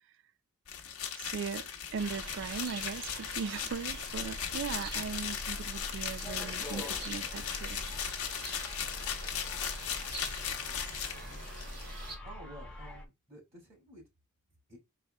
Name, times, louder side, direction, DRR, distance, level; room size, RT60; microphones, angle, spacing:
sound 1, 0.7-11.8, left 8 dB, 75° left, 0.9 m, -38 dB
voice 1, 1.2-7.8, right 6 dB, 55° right, 0.3 m, -39 dB
sound 2, 2.0-12.2, right 2 dB, 75° right, 2.7 m, -45 dB
sound 3, 4.3-13.0, left 1 dB, 5° left, 1.0 m, -45 dB
voice 2, 12.2-14.0 14.7-14.8, right 1 dB, 30° right, 2.2 m, -51 dB
5.9 x 4.1 x 2.2 m
head